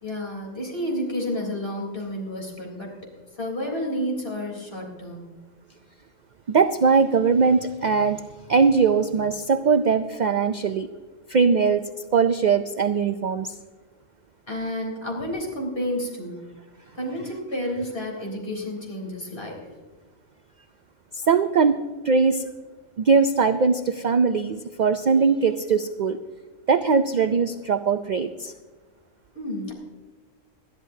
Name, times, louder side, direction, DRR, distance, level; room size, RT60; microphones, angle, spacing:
voice 1, 0.0-3.0 3.4-5.3 14.5-16.4 16.9-19.7 29.3-29.7, left 1 dB, 50° left, 0 dB, 3.8 m, -30 dB
voice 2, 6.5-8.2 8.5-10.9 11.3-11.8 12.1-13.5 21.1-22.5 23.0-26.2 26.7-28.5, right 5 dB, 60° right, 9 dB, 0.5 m, -21 dB
20.5 x 12.5 x 2.7 m, 1.3 s
omnidirectional pair, 1.3 m